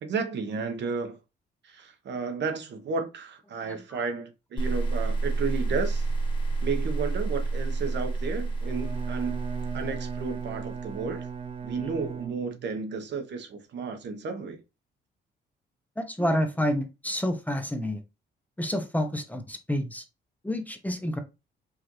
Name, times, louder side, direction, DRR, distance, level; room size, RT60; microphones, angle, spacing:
voice 1, 0.0-1.2 1.6-6.1 6.6-9.4 9.7-11.3 11.6-14.6, right 5 dB, 60° right, 1.0 m, -33 dB
sound 1, 4.6-11.7, right 3 dB, 25° left, 1.9 m, -30 dB
Bowed string instrument, 8.6-12.8, right 7 dB, 30° right, 0.5 m, -38 dB
voice 2, 16.0-18.0 18.6-20.0 20.4-21.2, equal, 10° left, 0.7 m, -28 dB
4.8 x 2.5 x 3.0 m
cardioid pair, 90°, 20 cm